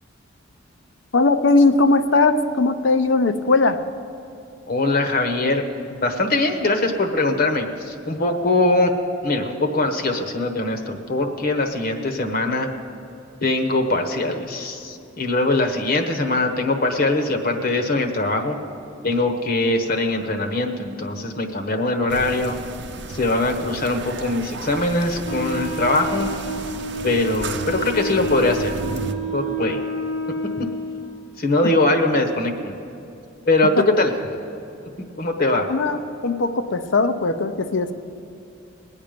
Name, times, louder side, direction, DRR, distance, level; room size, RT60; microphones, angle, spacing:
voice 1, 1.1-3.8 33.8-33.9 35.7-37.9, left 3 dB, 65° left, 9 dB, 0.7 m, -19 dB
voice 2, 4.7-5.6 5.9-8.9 9.2-12.7 13.4-18.6 19.0-22.6 23.1-26.3 27.0-28.7 29.3-29.8 30.6-30.7 31.4-32.7 33.5-34.1 35.2-35.7, left 2 dB, 50° left, 4 dB, 1.1 m, -22 dB
sound 1, 22.1-29.1, right 3 dB, 60° right, 0.7 m, -34 dB
Wind instrument woodwind instrument, 25.2-31.1, equal, 85° left, 1.3 m, -29 dB
21.0 x 9.0 x 5.2 m, 2.7 s
head